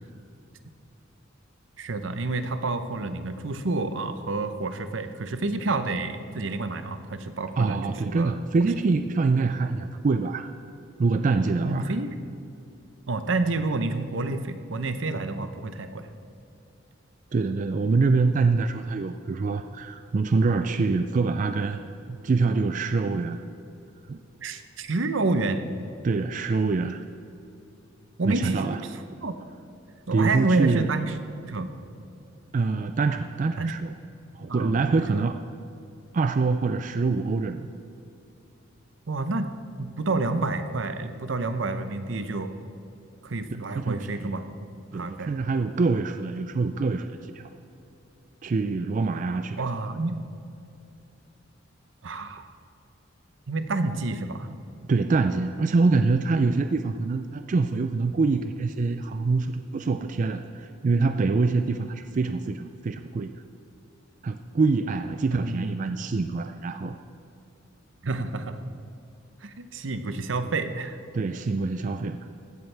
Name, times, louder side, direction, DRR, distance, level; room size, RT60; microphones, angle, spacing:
voice 1, 1.8-8.4 11.6-12.1 13.1-16.1 24.4-25.6 28.2-29.3 30.1-31.1 31.5-31.7 33.6-33.7 34.5-34.8 39.1-39.5 39.8-42.5 43.2-44.4 44.9-45.3 49.6-50.2 52.0-52.6 53.5-54.5 65.3-66.0 68.0-68.6 69.4-71.0, right 3 dB, 75° right, 9 dB, 0.7 m, -29 dB
voice 2, 7.6-10.5 11.0-11.9 17.3-21.8 22.1-23.4 24.1-24.2 26.0-27.1 28.2-28.8 30.1-30.9 32.5-33.9 34.3-35.4 36.1-37.7 43.8-44.3 44.9-47.5 48.4-49.6 54.9-63.3 64.2-67.0 71.1-72.2, right 3 dB, 40° right, 8 dB, 0.4 m, -25 dB
15.5 x 11.5 x 3.4 m, 2.7 s
head